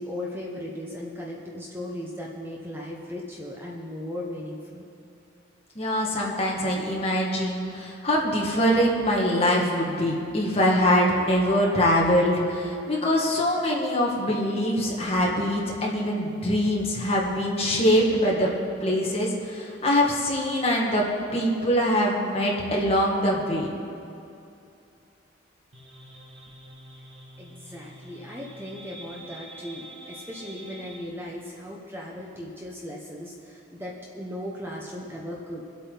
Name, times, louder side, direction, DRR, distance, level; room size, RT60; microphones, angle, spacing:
voice 1, 0.0-4.9 27.4-35.6, left 1 dB, 10° right, -3 dB, 1.0 m, -37 dB
voice 2, 5.8-18.5 18.8-21.1 21.3-23.7, equal, 30° left, -3 dB, 1.9 m, -23 dB
sound 1, 25.7-31.1, right 1 dB, 75° right, 2.1 m, -46 dB
24.0 x 8.3 x 4.0 m, 2.6 s
head